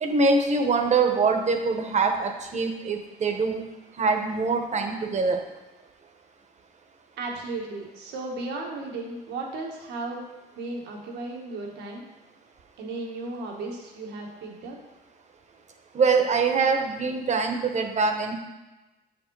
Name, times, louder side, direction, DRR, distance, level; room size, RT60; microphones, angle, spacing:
voice 1, 0.0-3.6 4.0-5.4 15.9-18.3, right 4 dB, 40° right, 5 dB, 1.0 m, -24 dB
voice 2, 7.2-10.2 10.5-12.1 12.8-14.8, right 2 dB, 90° right, 0 dB, 1.4 m, -35 dB
7.5 x 5.3 x 3.9 m, 1.1 s
cardioid pair, 85°, 17 cm